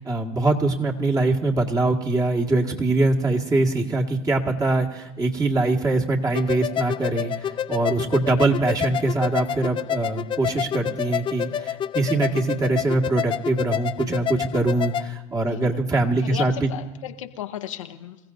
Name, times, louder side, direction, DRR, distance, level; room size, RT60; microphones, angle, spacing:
voice 1, 0.0-16.7, right 2 dB, 25° right, 0 dB, 1.9 m, -23 dB
sound 1, 6.3-15.1, left 9 dB, 30° left, 0.5 m, -28 dB
voice 2, 15.5-15.8 16.2-18.2, left 12 dB, 90° left, 7 dB, 0.9 m, -34 dB
25.5 x 15.5 x 2.7 m, 1.0 s
hypercardioid pair, 85°, 16 cm